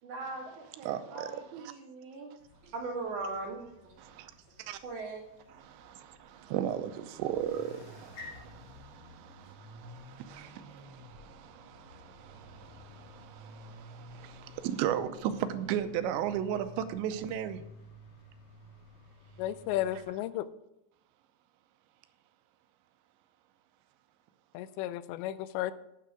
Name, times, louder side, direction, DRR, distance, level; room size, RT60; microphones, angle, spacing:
voice 1, 0.0-2.3 2.6-3.9 4.8-5.2, right 3 dB, 50° right, 3.5 m, -39 dB
voice 2, 0.9-1.3 4.0-4.3 4.6-4.8 5.6-17.6, right 10 dB, 90° right, 3.0 m, -36 dB
sound 1, 2.4-20.1, left 2 dB, 50° left, 2.4 m, -52 dB
voice 3, 19.4-20.5 24.5-25.7, left 13 dB, 85° left, 2.8 m, -33 dB
9.4 x 9.0 x 5.0 m
omnidirectional pair, 5.0 m